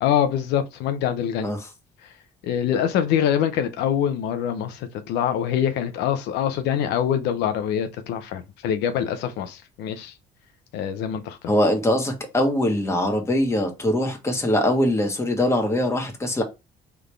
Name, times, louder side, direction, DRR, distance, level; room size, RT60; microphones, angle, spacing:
voice 1, 0.0-1.5 2.4-10.1 10.7-11.4, left 9 dB, 85° left, 0.6 m, -24 dB
voice 2, 11.5-16.4, left 1 dB, 15° left, 1.3 m, -22 dB
3.9 x 3.5 x 3.3 m
cardioid pair, 110°, 17 cm